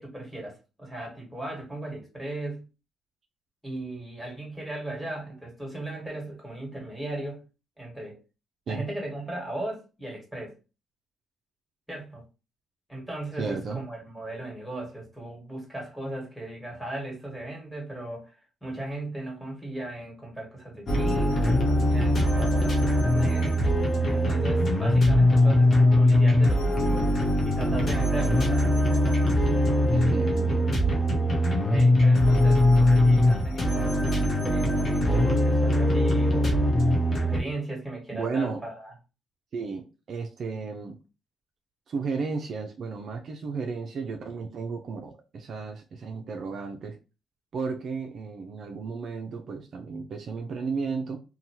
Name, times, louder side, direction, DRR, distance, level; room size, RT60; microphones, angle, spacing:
voice 1, 0.0-2.7 3.6-7.4 7.8-8.2 8.7-10.5 11.9-12.2 12.9-23.6 24.1-27.1 27.4-28.9 31.6-33.9 34.3-36.6 37.2-38.9, right 1 dB, 5° right, 1.6 m, -37 dB
voice 2, 13.4-13.8 29.9-30.8 38.1-38.6 39.5-41.0 41.9-47.0 47.5-51.2, right 4 dB, 60° right, 0.4 m, -33 dB
sound 1, 20.9-37.4, left 1 dB, 45° left, 0.8 m, -21 dB
2.8 x 2.2 x 2.8 m
cardioid pair, 90°, 0 cm